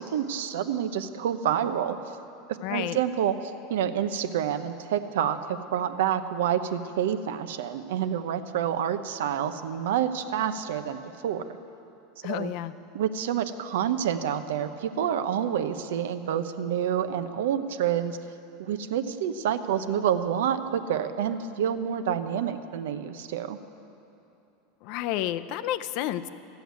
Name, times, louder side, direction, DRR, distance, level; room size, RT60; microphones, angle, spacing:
voice 1, 0.0-2.0 2.7-11.4 12.2-12.5 12.9-18.2 18.6-23.6, right 9 dB, 85° right, 10 dB, 0.7 m, -28 dB
voice 2, 2.6-3.0 12.2-12.7 24.8-26.3, left 12 dB, 60° left, 12 dB, 0.5 m, -30 dB
14.0 x 7.9 x 9.4 m, 2.8 s
supercardioid pair, 125°, 0 cm